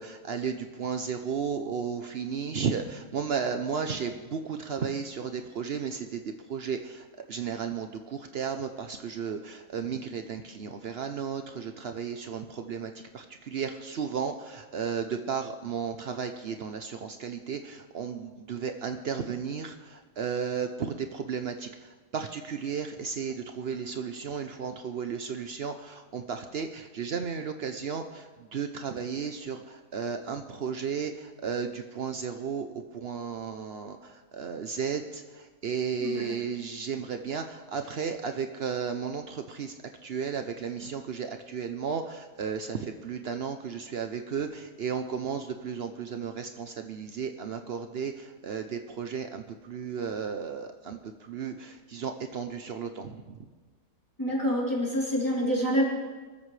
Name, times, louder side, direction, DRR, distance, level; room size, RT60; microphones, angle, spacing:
voice 1, 0.0-6.2 6.5-39.7 40.0-53.4, right 6 dB, 85° right, 6 dB, 0.5 m, -34 dB
voice 2, 36.0-36.3 54.2-55.8, equal, 10° left, -5 dB, 3.6 m, -27 dB
24.0 x 14.0 x 3.3 m, 1.3 s
omnidirectional pair, 2.0 m